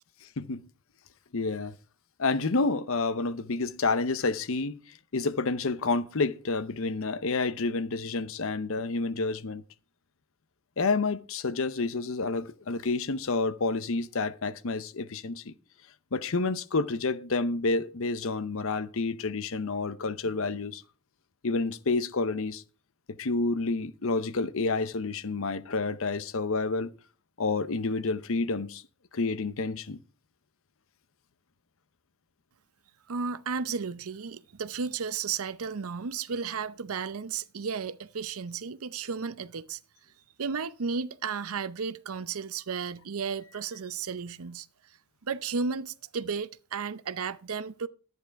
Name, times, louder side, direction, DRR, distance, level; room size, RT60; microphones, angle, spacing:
voice 1, 0.2-0.6 1.3-1.7 2.2-4.8 5.1-9.6 10.8-15.5 16.1-20.8 21.4-22.6 23.1-26.9 27.4-28.8 29.1-30.0, left 3 dB, 65° left, 0.8 m, -29 dB
voice 2, 33.1-39.8 40.4-44.7 45.2-47.9, right 5 dB, 80° right, 0.7 m, -33 dB
11.5 x 9.5 x 4.6 m
head